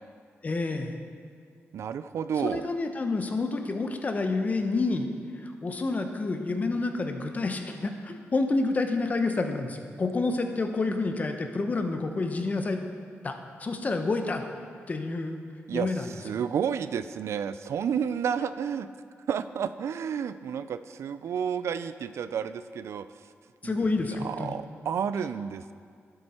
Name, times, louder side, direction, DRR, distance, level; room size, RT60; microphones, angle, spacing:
voice 1, 0.4-1.0 2.4-5.1 5.4-12.8 13.2-14.4 14.9-15.4 15.7-16.1 23.6-24.6, left 3 dB, 35° left, 6 dB, 0.9 m, -29 dB
voice 2, 1.7-2.7 15.7-18.9 19.3-23.1 23.6-25.7, right 7 dB, 70° right, 13 dB, 0.3 m, -31 dB
12.0 x 7.7 x 4.3 m, 2.1 s
wide cardioid pair, 120°, 5 cm